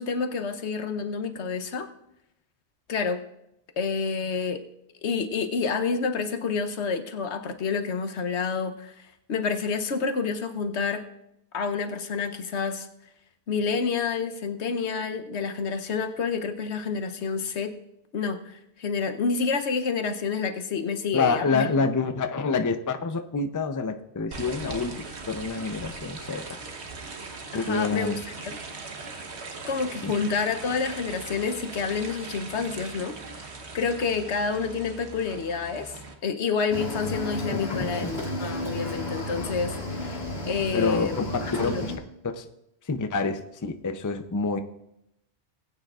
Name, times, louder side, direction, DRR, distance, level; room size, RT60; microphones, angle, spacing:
voice 1, 0.0-1.9 2.9-3.2 3.8-4.6 5.0-11.0 11.5-12.9 13.5-17.7 18.1-21.8 27.5-28.5 29.7-33.2 33.4-41.2 41.6-41.9, left 5 dB, 80° left, 7 dB, 1.2 m, -29 dB
voice 2, 21.1-26.6 27.5-28.2 30.0-30.1 37.5-38.2 40.7-41.9 42.2-42.5 42.8-44.6, left 4 dB, 25° left, 7 dB, 0.4 m, -27 dB
sound 1, 24.3-36.1, right 4 dB, 70° right, 1.4 m, -40 dB
Cricket / Waves surf, 36.7-42.0, left 1 dB, 65° left, 2.2 m, -33 dB
20.0 x 9.1 x 2.4 m, 0.84 s
omnidirectional pair, 1.1 m